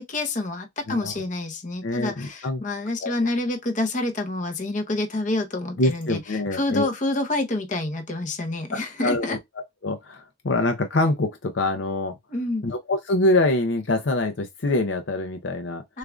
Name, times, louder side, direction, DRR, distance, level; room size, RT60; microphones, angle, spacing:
voice 1, 0.0-9.4 12.3-12.7 15.9-16.0, left 2 dB, 40° left, 0.8 m, -28 dB
voice 2, 1.8-2.6 3.0-3.1 5.8-6.9 8.7-9.4 9.8-12.1 12.6-15.8, left 2 dB, 65° left, 0.6 m, -24 dB
6.5 x 2.5 x 2.3 m
head